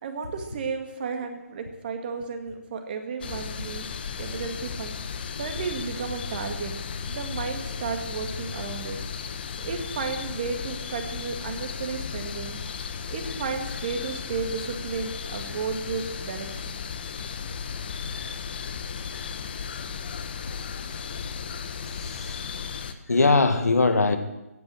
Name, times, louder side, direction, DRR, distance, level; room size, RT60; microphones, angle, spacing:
voice 1, 0.0-3.9 4.2-4.9 5.4-6.7 7.1-9.0 9.6-12.6 13.1-16.8, right 5 dB, 35° right, 5 dB, 2.1 m, -33 dB
sound 1, 3.2-22.9, left 6 dB, 40° left, 1.1 m, -35 dB
voice 2, 20.4-20.8 22.0-22.4 23.1-24.2, left 3 dB, 85° left, 7 dB, 2.0 m, -22 dB
15.5 x 9.3 x 7.7 m, 0.99 s
figure-of-eight pair, 155°, 8 cm